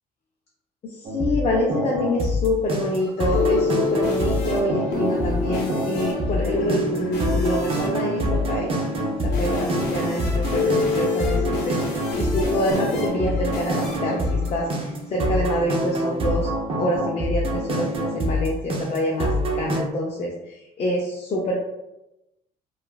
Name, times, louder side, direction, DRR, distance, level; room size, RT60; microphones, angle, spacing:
voice 1, 0.8-8.8 9.2-16.5 16.8-19.3 19.5-21.6, left 1 dB, 40° left, -2 dB, 0.5 m, -26 dB
sound 1, 1.0-19.8, equal, 35° right, 0.5 m, -26 dB
sound 2, 2.9-15.3, left 3 dB, 85° left, 0.9 m, -28 dB
2.9 x 2.3 x 2.2 m, 0.93 s
cardioid pair, 110°, 17 cm